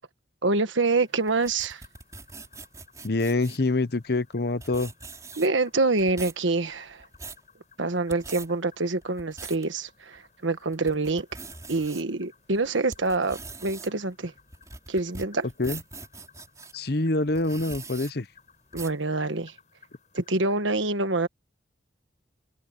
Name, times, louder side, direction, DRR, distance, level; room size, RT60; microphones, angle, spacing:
voice 1, 0.4-1.8 5.4-7.0 7.8-11.3 11.7-14.3 14.9-15.5 18.7-19.5 20.1-21.3, right 3 dB, 80° right, 1.4 m, -26 dB
sound 1, 0.8-20.6, left 6 dB, 40° left, 7.0 m, -59 dB
sound 2, 1.3-3.7 4.3-4.4 4.6-5.7 6.0-6.4 6.9-7.4 8.0-8.5 9.0-9.7 10.2-10.3 10.7-12.0 12.5-16.7 17.3-18.1 18.7-19.0, right 4 dB, 15° right, 4.7 m, -42 dB
voice 2, 3.0-4.9 15.6-15.8 16.7-18.3, left 2 dB, 55° left, 0.9 m, -25 dB
open air
head